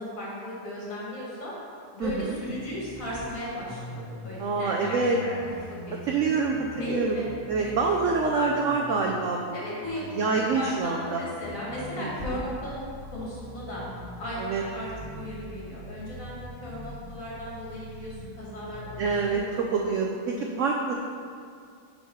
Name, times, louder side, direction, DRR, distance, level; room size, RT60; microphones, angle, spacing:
voice 1, 0.0-1.5 1.9-5.3 5.9-6.0 6.8-7.3 7.6-8.1 9.5-12.8 13.1-13.8 14.2-19.6, left 1 dB, 50° left, -7 dB, 2.2 m, -36 dB
voice 2, 2.0-2.4 4.4-5.2 6.1-9.6 10.1-11.2 12.0-12.4 14.4-14.6 19.0-20.9, right 4 dB, 75° right, 1 dB, 0.7 m, -26 dB
sound 1, 2.4-19.4, left 1 dB, 20° left, 0.4 m, -43 dB
5.5 x 4.6 x 5.8 m, 2.2 s
omnidirectional pair, 1.9 m